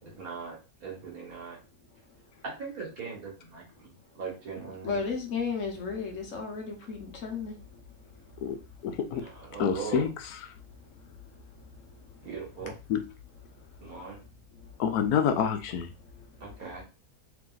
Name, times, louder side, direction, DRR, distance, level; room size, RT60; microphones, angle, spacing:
voice 1, 0.0-1.6 2.4-5.0 9.1-10.1 12.2-12.7 13.8-14.2 16.4-16.8, right 5 dB, 65° right, 1.9 m, -40 dB
voice 2, 4.8-7.5, left 5 dB, 60° left, 1.2 m, -33 dB
voice 3, 8.8-9.2 9.6-10.4 12.6-13.0 14.8-15.9, left 8 dB, 80° left, 1.1 m, -28 dB
3.4 x 3.3 x 3.8 m
omnidirectional pair, 1.6 m